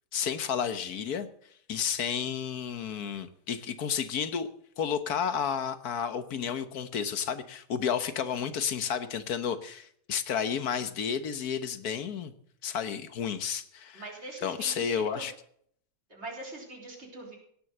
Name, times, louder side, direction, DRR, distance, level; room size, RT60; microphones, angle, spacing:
voice 1, 0.1-1.3 1.7-4.5 4.8-12.3 12.6-14.0 14.4-15.3, left 7 dB, 80° left, 12 dB, 1.6 m, -31 dB
voice 2, 13.9-15.2 16.1-17.4, right 2 dB, 45° right, -1 dB, 4.3 m, -42 dB
17.0 x 7.8 x 7.9 m, 0.64 s
omnidirectional pair, 1.6 m